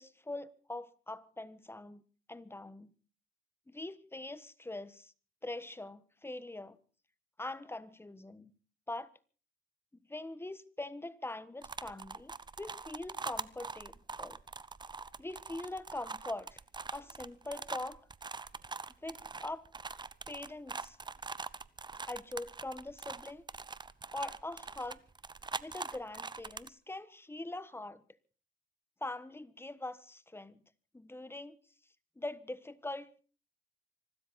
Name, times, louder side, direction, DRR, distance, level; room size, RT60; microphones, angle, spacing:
voice 1, 0.0-2.0 2.3-2.9 3.7-5.1 5.4-6.8 7.4-8.5 8.9-9.1 10.1-12.3 12.6-14.4 15.2-16.6 16.9-18.0 19.0-19.6 20.3-21.0 22.1-23.4 24.1-25.0 25.6-28.0 29.0-30.6 30.9-31.6 32.2-33.2, left 2 dB, 10° left, 1.3 m, -43 dB
sound 1, 11.6-26.7, right 4 dB, 20° right, 0.8 m, -43 dB
25.0 x 13.0 x 4.2 m
cardioid pair, 90°, 20 cm